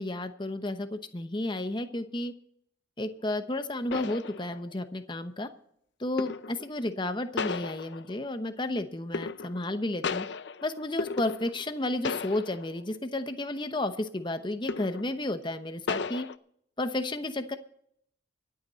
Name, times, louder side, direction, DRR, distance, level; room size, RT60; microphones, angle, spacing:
voice 1, 0.0-2.3 3.0-5.5 6.0-10.3 10.6-16.3 16.8-17.6, left 1 dB, 25° left, 9 dB, 0.9 m, -32 dB
sound 1, 3.9-4.8 6.2-6.7 7.4-8.3 9.1-9.7 10.0-11.8 12.0-12.8 13.2-13.4 14.7-15.2 15.9-16.3, left 4 dB, 70° left, 0.6 m, -35 dB
24.5 x 8.7 x 4.1 m, 0.70 s
head